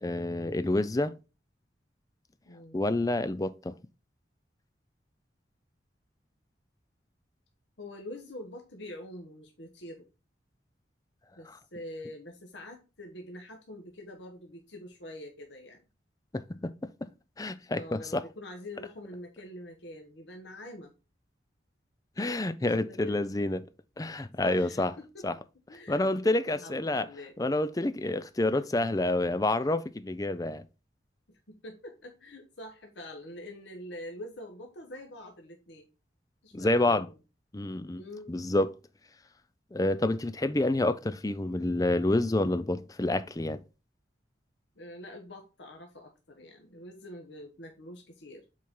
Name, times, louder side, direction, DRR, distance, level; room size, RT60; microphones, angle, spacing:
voice 1, 0.0-1.1 2.7-3.7 16.3-16.7 17.0-17.1 17.4-18.2 22.2-23.7 24.0-24.9 25.2-25.4 25.9-27.1 27.4-30.6 36.5-37.1 37.5-38.0 38.3-38.7 39.7-43.6, left 2 dB, 20° left, 0.5 m, -28 dB
voice 2, 2.5-2.8 7.8-10.0 11.4-15.8 17.8-20.9 22.6-23.2 24.4-25.3 25.7-27.3 28.5-28.6 31.3-35.9 36.4-37.1 37.9-38.3 44.8-48.5, left 1 dB, 75° left, 1.2 m, -45 dB
7.6 x 4.2 x 3.7 m
head